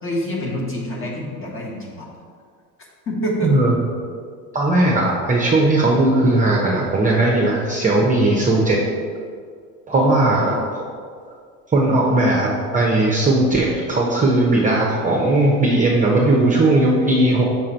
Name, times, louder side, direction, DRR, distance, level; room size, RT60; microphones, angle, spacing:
voice 1, 0.0-2.1 3.1-3.5 9.9-10.6, equal, 25° left, -2 dB, 1.5 m, -26 dB
voice 2, 3.4-3.7 4.5-8.8 9.9-10.5 11.7-17.4, right 2 dB, 15° right, -3 dB, 0.8 m, -17 dB
5.9 x 3.7 x 4.5 m, 2.1 s
hypercardioid pair, 80°, 49 cm